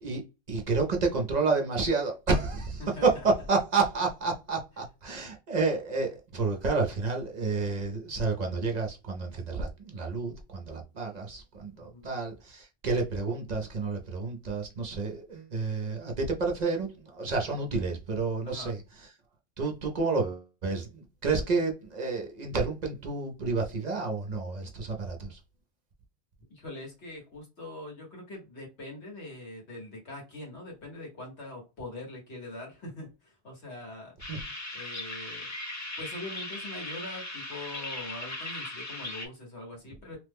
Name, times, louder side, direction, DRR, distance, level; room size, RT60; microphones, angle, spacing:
voice 1, 0.0-18.8 19.6-25.4 34.3-34.4, right 4 dB, 50° right, 0.6 m, -30 dB
voice 2, 2.8-3.2 11.8-12.1 18.4-18.8 26.5-34.1 34.7-35.5 36.0-40.2, left 2 dB, 85° left, 1.5 m, -43 dB
sound 1, 34.2-39.3, left 2 dB, 20° left, 0.5 m, -38 dB
3.0 x 2.1 x 3.4 m
omnidirectional pair, 1.1 m